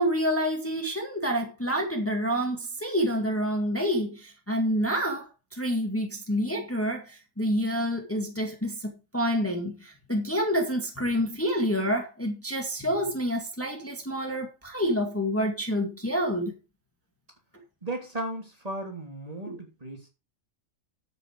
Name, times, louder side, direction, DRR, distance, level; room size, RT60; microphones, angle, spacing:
voice 1, 0.0-16.5, equal, 10° left, 2.1 m, -28 dB
voice 2, 17.8-20.1, right 1 dB, 25° right, 3.1 m, -35 dB
9.4 x 8.4 x 4.8 m
omnidirectional pair, 1.5 m